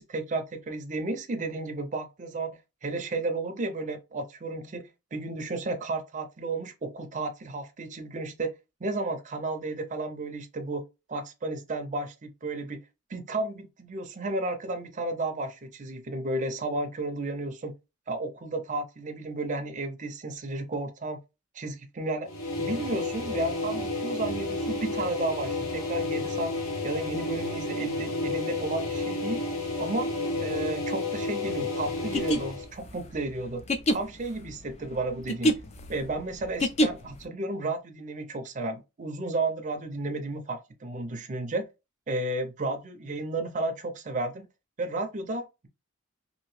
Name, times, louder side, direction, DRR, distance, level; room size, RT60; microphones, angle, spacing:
voice 1, 0.0-8.5 8.8-10.8 11.1-12.8 13.1-17.7 18.1-21.2 21.5-22.3 22.6-26.5 26.8-29.4 29.8-30.1 30.4-33.6 33.9-35.6 35.9-41.7 42.1-44.5 44.8-45.7, right 2 dB, 35° right, 0.5 m, -33 dB
sound 1, 22.2-32.7, left 2 dB, 70° left, 1.0 m, -31 dB
sound 2, 32.0-37.2, equal, 30° left, 0.4 m, -27 dB
2.9 x 2.5 x 3.1 m
head